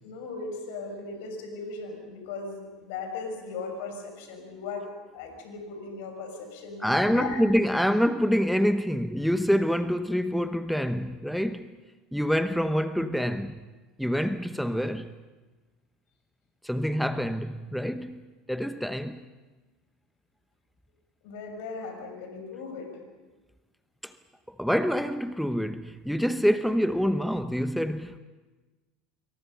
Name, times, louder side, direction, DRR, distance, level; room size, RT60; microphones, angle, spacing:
voice 1, 0.0-7.4 21.2-23.0, left 4 dB, 65° left, 6.1 m, -38 dB
voice 2, 6.8-11.7 12.1-13.6 14.0-15.1 16.6-18.2 18.5-19.2 24.0-24.1 24.5-28.2, equal, ahead, 1.0 m, -26 dB
26.5 x 23.5 x 5.6 m
hypercardioid pair, 75°, 0 cm